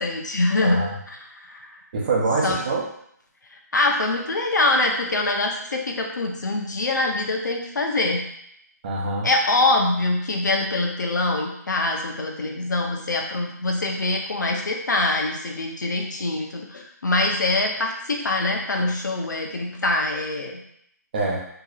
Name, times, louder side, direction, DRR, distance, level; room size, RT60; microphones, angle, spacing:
voice 1, 0.0-1.7 2.4-2.6 3.5-8.2 9.2-20.6, left 2 dB, 80° left, 1 dB, 0.9 m, -24 dB
voice 2, 0.6-1.0 1.9-2.8 8.8-9.3 21.1-21.5, right 3 dB, 30° right, -1 dB, 0.7 m, -24 dB
4.6 x 3.0 x 2.4 m, 0.71 s
hypercardioid pair, 165°, 10 cm